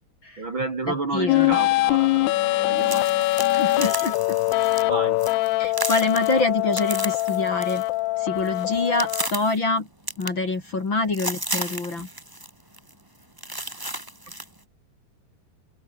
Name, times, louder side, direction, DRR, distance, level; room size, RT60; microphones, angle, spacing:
voice 1, 0.4-3.3 4.9-5.2, right 2 dB, 35° right, 3.3 m, -30 dB
voice 2, 1.1-1.6 3.5-4.4 5.6-7.8 8.2-9.9 10.2-12.1, left 3 dB, 30° left, 3.7 m, -26 dB
sound 1, 1.3-9.3, left 19 dB, 85° left, 2.9 m, -23 dB
sound 2, 2.8-4.8 5.2-5.5 5.7-7.9 8.2-9.6 10.1-10.8 11.1-12.5 12.7-12.9 13.4-14.5, right 1 dB, 5° right, 2.1 m, -33 dB
omnidirectional pair, 4.5 m